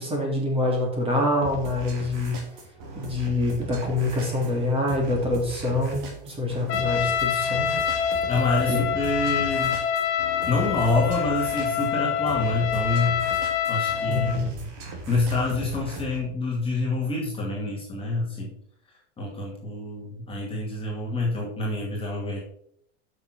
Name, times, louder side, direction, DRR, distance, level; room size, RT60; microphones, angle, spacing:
voice 1, 0.0-2.4 3.0-6.0 6.3-7.7 8.7-8.8 14.1-14.5, left 2 dB, 15° right, 0 dB, 3.1 m, -25 dB
sound 1, 1.4-16.2, right 3 dB, 50° right, 3.0 m, -39 dB
Trumpet, 6.7-14.4, left 8 dB, 35° left, 2.9 m, -26 dB
voice 2, 8.3-9.8 10.5-14.7 15.1-18.5 19.2-22.4, left 2 dB, 15° left, -3 dB, 2.3 m, -27 dB
7.7 x 6.3 x 6.3 m, 0.70 s
supercardioid pair, 130°, 34 cm